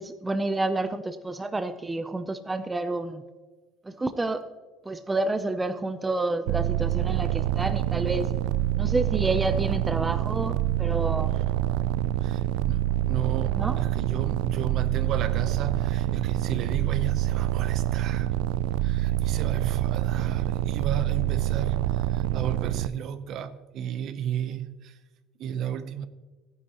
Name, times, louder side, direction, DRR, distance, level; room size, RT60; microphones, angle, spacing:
voice 1, 0.0-3.2 3.8-4.4 4.9-8.3 8.8-11.4 13.5-13.8, right 2 dB, 10° right, 0.5 m, -29 dB
sound 1, 6.5-22.9, right 13 dB, 85° right, 0.3 m, -26 dB
voice 2, 12.2-18.3 18.8-25.0 25.4-26.1, right 9 dB, 50° right, 0.7 m, -34 dB
15.5 x 9.5 x 2.9 m
cardioid pair, 140°, 0 cm